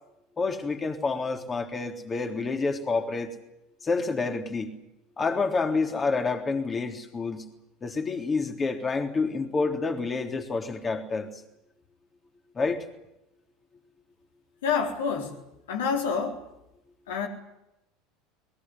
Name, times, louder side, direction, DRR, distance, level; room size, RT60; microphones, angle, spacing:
voice 1, 0.4-3.3 3.8-4.7 5.2-7.5 7.8-11.3 12.6-12.8, left 4 dB, 20° left, 4 dB, 3.5 m, -28 dB
voice 2, 14.6-15.4 15.7-16.5 17.1-17.3, left 6 dB, 65° left, 3 dB, 4.1 m, -28 dB
22.0 x 21.5 x 9.6 m, 0.89 s
figure-of-eight pair, 75°, 0 cm